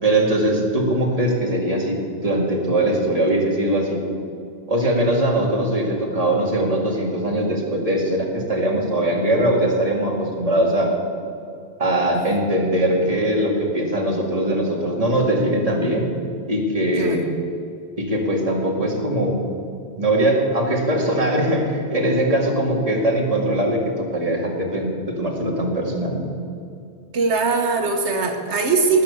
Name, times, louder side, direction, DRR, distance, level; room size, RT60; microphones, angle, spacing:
voice 1, 0.0-4.0 4.7-10.9 11.8-16.1 16.5-17.2 18.0-19.4 20.0-26.2, right 1 dB, 35° right, -1 dB, 2.2 m, -21 dB
voice 2, 27.1-29.0, right 4 dB, 85° right, 4 dB, 1.5 m, -21 dB
18.5 x 7.4 x 6.9 m, 2.5 s
omnidirectional pair, 1.1 m